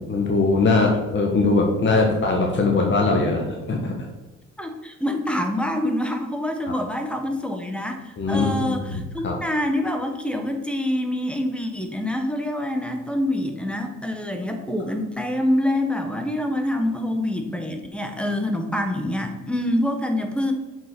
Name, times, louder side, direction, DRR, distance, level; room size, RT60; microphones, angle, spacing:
voice 1, 0.1-3.9 6.7-6.8 8.2-9.3, left 3 dB, 40° left, 0 dB, 1.5 m, -21 dB
voice 2, 4.6-20.5, left 1 dB, 5° left, 4 dB, 1.3 m, -26 dB
7.3 x 5.5 x 5.3 m, 1.1 s
cardioid pair, 90°, 30 cm